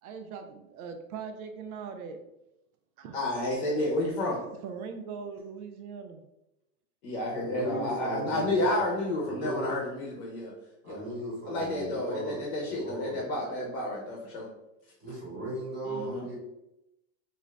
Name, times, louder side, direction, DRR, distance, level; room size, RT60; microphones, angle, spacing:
voice 1, 0.0-2.2 3.0-3.2 4.6-6.2, right 6 dB, 85° right, 6 dB, 0.6 m, -40 dB
voice 2, 3.1-4.4 7.0-10.5 10.8-11.0 11.5-14.5 15.9-16.2, left 1 dB, 40° left, -2 dB, 0.7 m, -30 dB
voice 3, 7.4-8.8 9.2-9.7 10.8-13.2 15.0-16.3, right 1 dB, 25° right, -6 dB, 0.9 m, -37 dB
2.6 x 2.4 x 3.1 m, 0.89 s
supercardioid pair, 160°, 43 cm